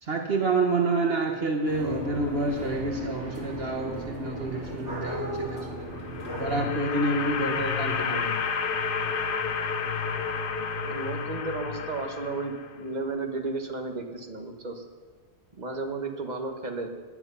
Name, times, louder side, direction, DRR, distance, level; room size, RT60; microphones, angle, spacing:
voice 1, 0.0-5.9 6.4-8.3, right 2 dB, 60° right, 2 dB, 1.4 m, -28 dB
sound 1, 1.6-6.7, right 1 dB, 90° right, 4.1 m, -36 dB
sound 2, 5.7-12.9, left 5 dB, 55° left, 0.9 m, -30 dB
voice 2, 10.8-14.8 15.6-16.9, right 3 dB, 40° right, 3 dB, 1.6 m, -33 dB
18.5 x 10.5 x 5.6 m, 1.5 s
omnidirectional pair, 1.2 m